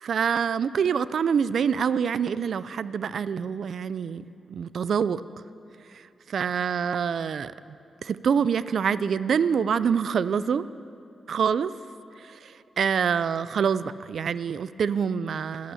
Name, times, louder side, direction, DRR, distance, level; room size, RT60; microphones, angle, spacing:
voice 1, 0.0-5.2 5.9-7.5 8.0-10.6 11.3-11.7 12.2-15.7, right 7 dB, 65° right, 16 dB, 0.3 m, -26 dB
11.5 x 11.0 x 7.0 m, 2.6 s
wide cardioid pair, 110°, 0 cm